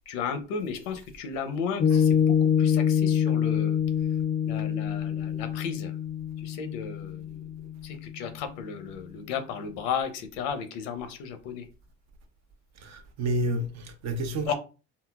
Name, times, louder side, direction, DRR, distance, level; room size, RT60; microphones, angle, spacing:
voice 1, 0.1-3.8 4.4-5.9 6.4-7.5 7.8-11.7 14.5-14.6, left 6 dB, 85° left, 0.7 m, -34 dB
Piano, 1.8-8.5, left 8 dB, 25° left, 0.4 m, -26 dB
voice 2, 12.8-14.5, right 1 dB, 60° right, 0.8 m, -30 dB
3.9 x 2.0 x 2.3 m
supercardioid pair, 85°, 30 cm